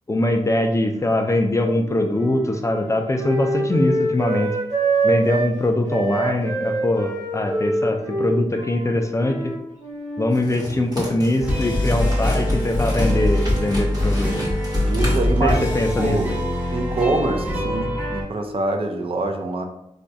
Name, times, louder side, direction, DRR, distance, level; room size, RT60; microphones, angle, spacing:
voice 1, 0.1-4.5 5.0-9.4 10.2-14.3 15.4-16.2, left 1 dB, 25° left, 4 dB, 0.3 m, -22 dB
Wind instrument woodwind instrument, 1.5-5.5 5.9-10.3, right 2 dB, 70° right, 1.4 m, -25 dB
sound 1, 10.3-15.9, equal, 35° right, 1.1 m, -34 dB
sound 2, 11.4-18.2, left 1 dB, 10° right, 1.0 m, -23 dB
voice 2, 14.7-15.7 16.0-16.3 16.7-19.6, right 2 dB, 50° right, 4 dB, 0.4 m, -25 dB
4.1 x 2.2 x 2.6 m, 0.85 s
wide cardioid pair, 120°, 13 cm